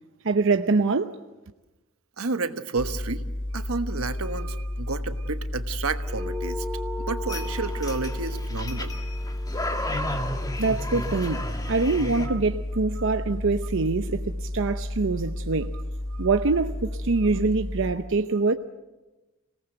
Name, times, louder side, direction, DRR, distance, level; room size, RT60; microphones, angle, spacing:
voice 1, 0.2-1.2 10.6-11.4 11.7-15.7 16.2-18.6, right 3 dB, 65° right, 0.7 m, -24 dB
voice 2, 2.2-3.2 3.5-6.7 7.0-9.0 11.6-11.7 12.2-12.4 13.0-13.2 16.2-16.3 17.3-17.4, right 4 dB, 85° right, 1.3 m, -31 dB
sound 1, 2.8-18.0, left 1 dB, 60° left, 3.1 m, -32 dB
sound 2, 6.1-10.9, left 1 dB, 5° right, 2.6 m, -39 dB
sound 3, 7.3-12.3, left 1 dB, 20° left, 1.9 m, -34 dB
26.5 x 18.5 x 7.9 m
head